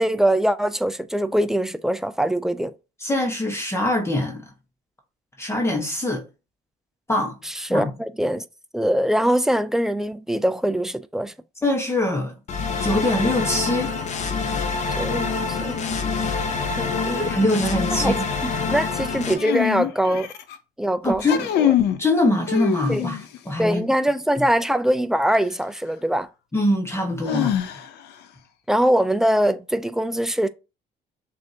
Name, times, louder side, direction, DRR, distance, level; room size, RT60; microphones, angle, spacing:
voice 1, 0.0-2.7 7.4-8.4 8.7-11.3 15.0-16.0 16.8-17.2 17.9-18.1 18.4-20.3 20.8-21.2 21.6-21.7 22.9-23.0 23.6-26.3 28.7-30.5, right 1 dB, 5° right, 0.3 m, -22 dB
voice 2, 3.0-4.4 5.4-6.2 7.1-7.4 7.7-7.9 11.6-12.3 12.8-13.9 17.1-18.2 21.0-21.4 22.0-23.2 23.4-23.8 26.5-27.5, left 1 dB, 15° left, 1.1 m, -23 dB
sound 1, 12.5-19.3, left 4 dB, 45° left, 0.8 m, -26 dB
sound 2, 19.3-20.5 21.1-22.0 22.5-23.4 25.3-25.4 27.2-28.1, left 11 dB, 80° left, 0.6 m, -24 dB
6.3 x 2.6 x 2.8 m
cardioid pair, 110°, 17 cm